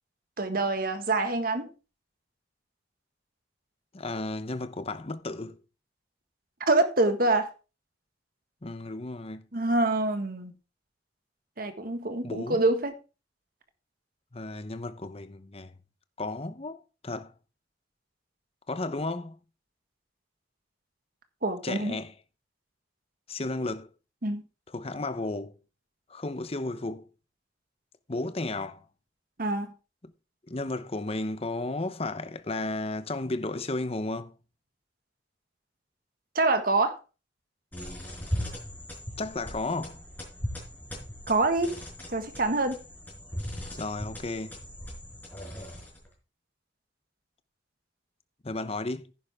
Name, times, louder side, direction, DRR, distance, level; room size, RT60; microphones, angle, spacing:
voice 1, 0.4-1.7 6.7-7.5 9.5-10.5 11.6-12.9 21.4-22.0 24.2-24.4 29.4-29.7 36.4-37.0 41.3-41.8 42.1-42.8, right 2 dB, 50° right, 1.7 m, -25 dB
voice 2, 3.9-5.6 8.6-9.5 12.2-12.6 14.3-15.7 16.2-17.3 18.7-19.4 21.6-22.1 23.3-23.9 24.7-25.6 26.1-27.1 28.1-28.8 30.5-34.3 39.2-40.0 43.8-44.6 48.4-49.1, left 2 dB, 35° left, 0.8 m, -33 dB
sound 1, 37.7-46.1, equal, 10° left, 5.0 m, -38 dB
10.5 x 10.5 x 3.6 m
head